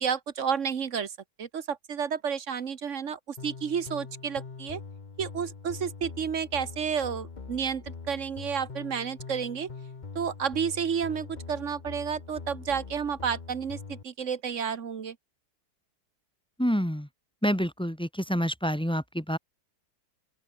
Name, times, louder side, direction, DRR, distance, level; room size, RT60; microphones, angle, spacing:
voice 1, 0.0-1.1 1.4-4.8 5.2-9.7 10.1-15.1, right 7 dB, 50° right, 1.4 m, -31 dB
sound 1, 3.4-14.0, left 4 dB, 30° left, 1.2 m, -43 dB
voice 2, 16.6-17.1 17.4-19.4, equal, 5° left, 1.5 m, -27 dB
open air
omnidirectional pair, 1.7 m